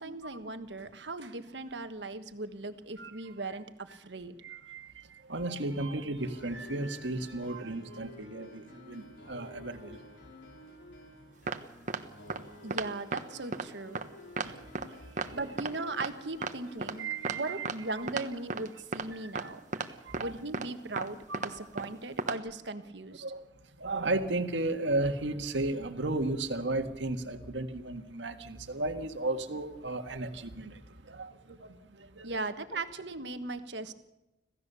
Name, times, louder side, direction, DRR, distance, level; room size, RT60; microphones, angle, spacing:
voice 1, 0.0-4.3 12.6-14.0 15.3-19.6 20.2-23.2 32.2-33.9, right 2 dB, 75° right, 9 dB, 1.4 m, -38 dB
voice 2, 4.4-4.9 5.3-10.0 14.4-14.6 17.0-17.7 19.4-19.5 19.8-20.3 21.3-21.8 23.2-23.4 23.8-30.8 31.1-31.8 32.2-32.5, right 2 dB, 90° right, 6 dB, 1.8 m, -34 dB
sound 1, 6.2-18.2, left 1 dB, 80° left, 3.8 m, -52 dB
sound 2, 11.5-11.6 11.9-12.0 12.3-12.4 12.7-12.9 13.1-13.2 13.5-13.7 13.9-14.0 14.4-14.5 14.7-14.9 15.2-15.3 15.6-15.7 16.0-16.1 16.4-16.5 16.8-16.9 17.2-17.4 17.6-17.8 18.1-18.2 18.5-18.7 18.9-19.1 19.4-19.5 19.7-19.9 20.1-20.2 20.5-20.7 21.0-21.1 21.3-21.5 21.8-21.9 22.2-22.4, right 4 dB, 45° right, 1.2 m, -33 dB
26.5 x 16.0 x 6.9 m, 0.98 s
head